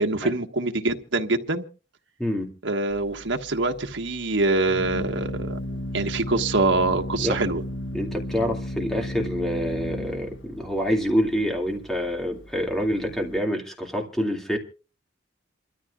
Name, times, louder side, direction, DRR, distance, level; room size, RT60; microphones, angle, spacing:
voice 1, 0.0-1.6 2.6-5.6 5.9-7.6, right 2 dB, 80° right, 1.5 m, -24 dB
voice 2, 2.2-2.5 7.1-7.4 7.9-14.6, equal, ahead, 2.4 m, -26 dB
Organ, 2.9-13.4, left 1 dB, 90° left, 1.4 m, -34 dB
28.0 x 13.0 x 2.4 m
head